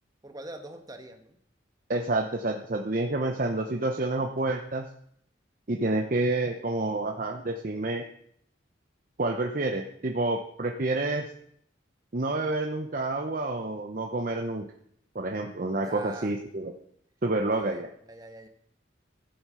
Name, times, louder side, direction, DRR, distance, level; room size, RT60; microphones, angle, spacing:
voice 1, 0.2-1.4 15.8-16.4 17.5-18.5, right 2 dB, 20° right, 5 dB, 1.2 m, -44 dB
voice 2, 1.9-4.9 5.7-8.0 9.2-11.3 12.1-14.7 15.1-16.7 17.2-17.9, right 2 dB, 45° right, 3 dB, 0.8 m, -28 dB
13.5 x 7.9 x 5.7 m, 0.70 s
head